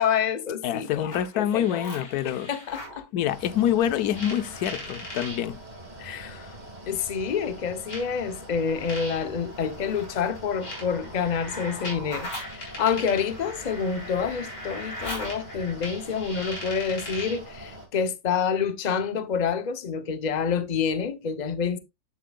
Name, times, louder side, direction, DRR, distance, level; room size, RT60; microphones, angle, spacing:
voice 1, 0.0-3.0 6.0-6.5 6.9-21.8, left 7 dB, 35° left, 0.8 m, -28 dB
voice 2, 0.6-2.5 3.1-5.6, left 10 dB, 90° left, 1.2 m, -26 dB
sound 1, 1.0-3.0 4.1-5.4 6.5-6.6 7.9-17.5, left 1 dB, 70° left, 4.4 m, -39 dB
Mechanical fan, 3.3-17.9, right 1 dB, 30° right, 2.3 m, -44 dB
10.5 x 7.5 x 2.3 m
omnidirectional pair, 1.6 m